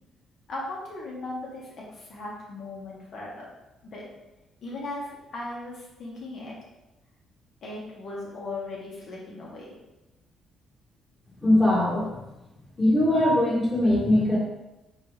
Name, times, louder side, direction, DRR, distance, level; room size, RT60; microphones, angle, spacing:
voice 1, 0.5-3.4 3.8-4.1 4.6-6.5 7.6-9.7, left 2 dB, 60° left, -4 dB, 1.6 m, -37 dB
voice 2, 11.4-12.2 12.8-14.4, left 1 dB, 20° left, -8 dB, 1.7 m, -21 dB
4.1 x 3.9 x 3.3 m, 0.99 s
cardioid pair, 90°, 0 cm